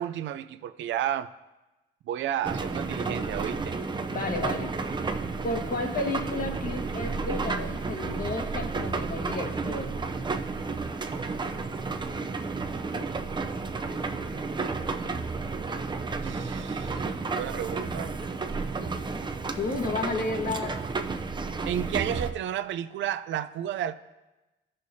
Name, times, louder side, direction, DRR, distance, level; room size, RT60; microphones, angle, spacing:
voice 1, 0.0-1.3 2.1-3.8 16.2-17.1 17.3-18.1 21.6-23.9, right 10 dB, 70° right, 0.4 m, -32 dB
sound 1, 2.4-22.3, right 4 dB, 25° right, 0.6 m, -32 dB
voice 2, 4.1-4.7 5.4-9.9 19.5-20.8, left 2 dB, 45° left, 1.3 m, -32 dB
15.0 x 6.5 x 2.7 m
cardioid pair, 90°, 20 cm